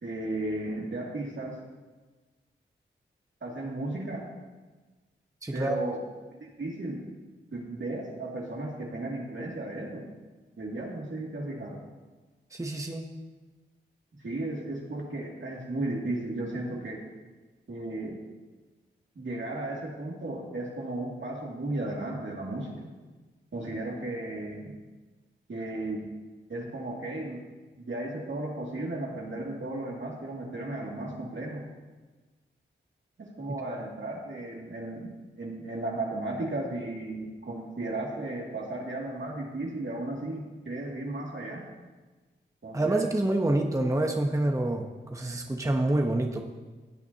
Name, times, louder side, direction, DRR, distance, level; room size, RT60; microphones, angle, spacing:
voice 1, 0.0-1.6 3.4-4.2 5.5-6.0 6.6-7.0 7.5-10.1 10.6-11.8 14.2-17.0 17.7-18.2 19.2-22.9 23.5-24.7 25.5-26.0 26.5-27.4 27.8-31.6 33.2-41.6 42.6-43.1, right 2 dB, 65° right, -2 dB, 2.4 m, -35 dB
voice 2, 5.4-5.8 12.5-13.1 42.7-46.4, right 1 dB, 15° right, 3 dB, 0.9 m, -27 dB
16.5 x 8.1 x 2.8 m, 1.3 s
cardioid pair, 50°, 21 cm